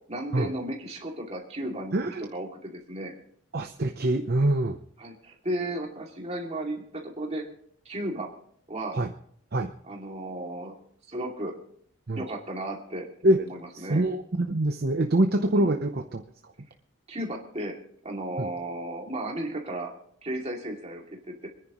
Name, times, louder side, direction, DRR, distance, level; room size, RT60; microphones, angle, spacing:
voice 1, 0.1-3.1 5.0-7.4 7.8-8.3 8.7-9.0 9.9-10.7 11.1-11.5 12.1-13.1 13.4-14.0 15.5-15.7 17.1-17.7 18.0-19.9 20.2-21.5, right 1 dB, 30° right, -1 dB, 2.5 m, -34 dB
voice 2, 1.9-2.3 3.5-4.8 8.9-9.1 9.5-9.7 12.1-12.2 13.2-13.4 13.7-16.2 18.4-18.5, right 1 dB, 45° right, 6 dB, 0.7 m, -25 dB
26.5 x 10.5 x 3.1 m, 0.63 s
head